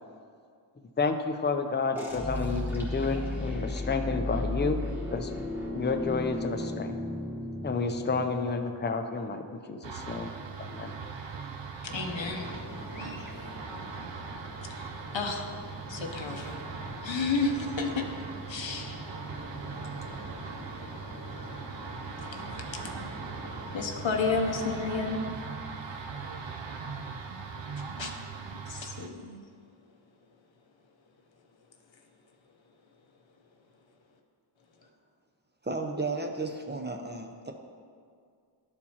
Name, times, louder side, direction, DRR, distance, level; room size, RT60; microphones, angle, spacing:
voice 1, 1.0-4.8 5.1-5.3 5.7-7.0 7.6-10.3 10.6-10.9, left 4 dB, 25° left, 6 dB, 0.5 m, -30 dB
sound 1, 2.0-8.6, left 2 dB, 5° right, 1.2 m, -34 dB
sound 2, 9.8-29.1, right 5 dB, 75° right, 0.6 m, -40 dB
voice 2, 11.8-12.5 14.7-14.9 15.1-15.5 15.9-16.6 17.0-18.1 18.5-19.0 22.3-22.4 23.7-25.2 28.0-28.1 28.7-29.4, left 4 dB, 80° left, 3 dB, 0.8 m, -31 dB
sound 3, 11.8-25.1, left 1 dB, 45° left, 1.1 m, -44 dB
voice 3, 35.6-37.5, right 3 dB, 25° right, 3 dB, 0.6 m, -33 dB
11.5 x 4.5 x 2.8 m, 2.2 s
wide cardioid pair, 60°, 45 cm